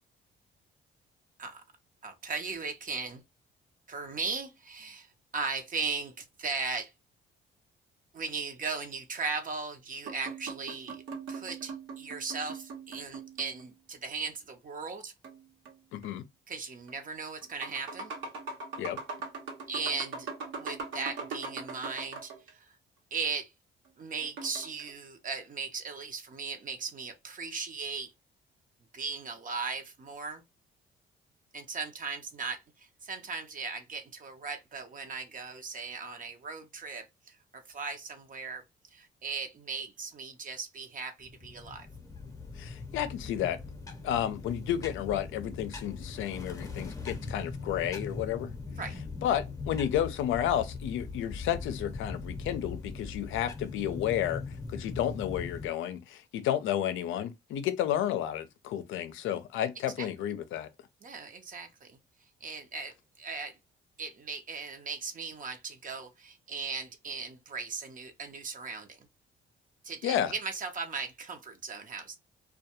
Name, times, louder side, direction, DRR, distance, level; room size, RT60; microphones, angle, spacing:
voice 1, 2.0-3.2 3.9-5.1 5.3-6.9 8.1-11.0 11.3-15.1 16.5-18.1 19.7-20.3 20.6-22.7 23.1-23.5 24.0-28.1 28.9-30.4 31.5-38.6 38.9-41.9 48.8-48.9 60.0-60.1 61.0-62.0 62.4-63.6 64.0-69.1 69.8-72.2, right 4 dB, 40° right, 0.6 m, -37 dB
sound 1, 10.0-13.8 15.2-16.1 16.9-17.0 17.4-22.5 24.2-24.9, right 4 dB, 75° right, 1.0 m, -41 dB
voice 2, 15.9-16.2 18.8-19.0 42.6-43.6 44.0-48.5 49.2-54.4 54.7-60.7 70.0-70.3, left 10 dB, 85° left, 0.5 m, -31 dB
sound 2, 41.2-55.7, left 4 dB, 15° left, 0.7 m, -40 dB
2.2 x 2.2 x 2.8 m
cardioid pair, 90°, 20 cm